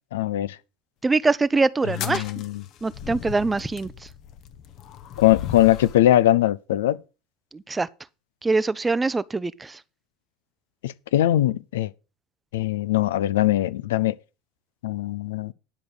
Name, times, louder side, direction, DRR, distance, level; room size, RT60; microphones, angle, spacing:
voice 1, 0.1-0.6 2.1-2.6 5.2-7.0 10.8-11.9 12.5-14.1 14.8-15.5, left 14 dB, 80° left, 0.5 m, -21 dB
voice 2, 1.0-2.2 2.8-4.1 7.5-7.9 8.4-9.8, right 3 dB, 15° right, 0.5 m, -23 dB
sound 1, 1.8-6.0, left 9 dB, 55° left, 1.0 m, -37 dB
10.0 x 5.3 x 6.3 m
hypercardioid pair, 85°, 0 cm